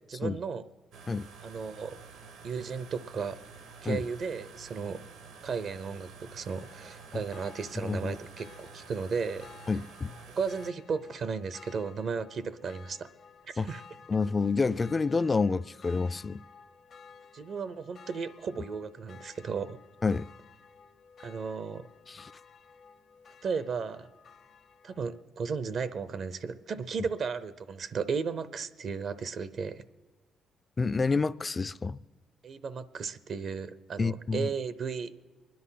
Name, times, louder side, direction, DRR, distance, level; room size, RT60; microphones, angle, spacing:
voice 1, 0.1-0.6 1.4-2.0 2.4-3.4 3.8-5.0 5.4-9.5 10.4-13.1 13.5-13.8 17.3-19.8 21.2-21.9 23.4-24.1 24.8-29.8 32.4-35.2, right 5 dB, 55° right, 0.7 m, -35 dB
sound 1, 0.9-10.7, right 5 dB, 85° right, 1.5 m, -50 dB
sound 2, 6.5-25.2, left 6 dB, 55° left, 0.8 m, -54 dB
voice 2, 7.8-8.2 9.7-10.1 13.6-13.7 14.1-16.4 20.0-20.3 22.1-22.3 30.8-32.0 34.0-34.5, left 4 dB, 30° left, 0.4 m, -28 dB
24.5 x 10.5 x 5.8 m
cardioid pair, 90°, 0 cm